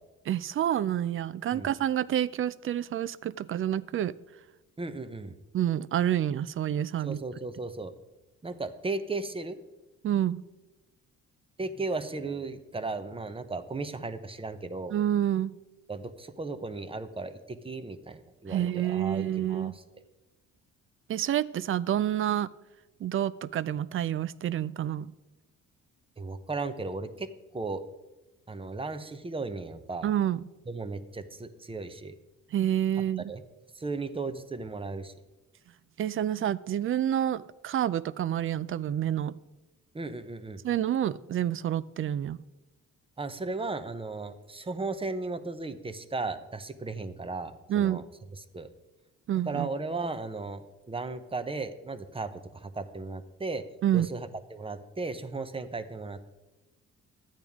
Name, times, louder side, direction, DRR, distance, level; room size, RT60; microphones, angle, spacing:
voice 1, 0.3-4.1 5.5-7.2 10.0-10.4 14.9-15.6 18.5-19.7 21.1-22.5 23.0-25.1 30.0-30.4 32.5-33.2 36.0-39.4 40.6-42.4 47.7-48.0 49.3-49.7 53.8-54.1, right 11 dB, 45° right, 0.4 m, -28 dB
voice 2, 4.8-5.3 7.0-7.9 8.4-9.6 11.6-14.9 15.9-19.8 26.2-27.8 28.5-30.1 30.7-32.1 33.3-33.4 33.7-35.1 39.9-40.6 43.2-48.0 48.4-48.7 49.4-53.6 53.9-56.2, right 3 dB, 20° right, 0.7 m, -36 dB
12.0 x 9.0 x 3.6 m
cardioid pair, 90°, 30 cm